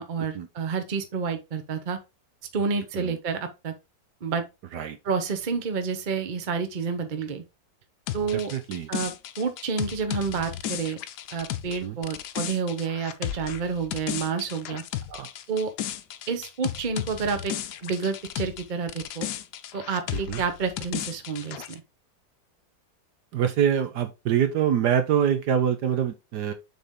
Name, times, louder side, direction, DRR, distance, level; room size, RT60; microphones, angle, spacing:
voice 1, 0.0-2.0 2.5-3.7 4.2-4.4 5.0-7.4 8.1-8.5 8.9-11.0 11.3-14.8 15.5-15.7 16.3-17.5 17.8-19.3 19.7-21.8, right 5 dB, 35° right, 0.9 m, -29 dB
sound 1, 8.1-18.6 18.9-21.8, left 11 dB, 70° left, 1.1 m, -34 dB
voice 2, 8.3-8.9 11.8-12.0 15.1-15.3 20.1-20.4 23.3-26.5, right 8 dB, 70° right, 1.2 m, -25 dB
7.0 x 4.1 x 3.7 m
omnidirectional pair, 2.1 m